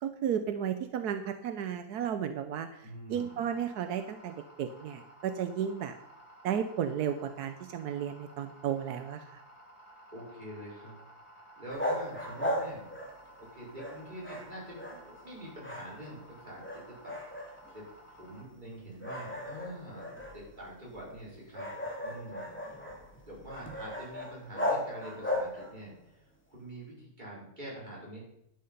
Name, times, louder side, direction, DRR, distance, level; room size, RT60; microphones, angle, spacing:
voice 1, 0.0-5.9 6.4-9.4, right 8 dB, 85° right, 8 dB, 1.3 m, -34 dB
voice 2, 2.8-3.4 10.1-11.0 11.3-12.9 13.4-17.8 18.1-22.8 23.2-25.9 26.5-28.2, right 1 dB, 30° right, -5 dB, 5.2 m, -46 dB
sound 1, 3.1-18.4, right 1 dB, 80° left, 3.8 m, -55 dB
sound 2, 11.7-13.5 13.8-15.3 15.6-16.3 16.6-17.8 18.3-18.4 19.0-25.9, left 1 dB, 5° left, 2.1 m, -37 dB
11.5 x 8.6 x 5.4 m, 0.78 s
omnidirectional pair, 1.6 m